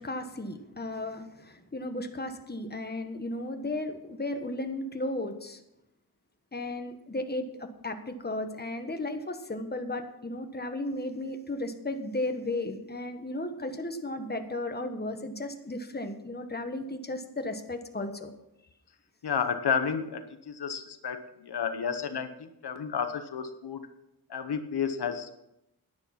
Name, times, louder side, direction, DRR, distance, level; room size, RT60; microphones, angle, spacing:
voice 1, 0.0-5.6 6.5-18.3, left 2 dB, 25° left, 6 dB, 1.3 m, -35 dB
voice 2, 19.2-23.9 24.3-25.3, left 7 dB, 80° left, 9 dB, 1.0 m, -31 dB
10.5 x 9.9 x 5.8 m, 0.85 s
wide cardioid pair, 85°, 39 cm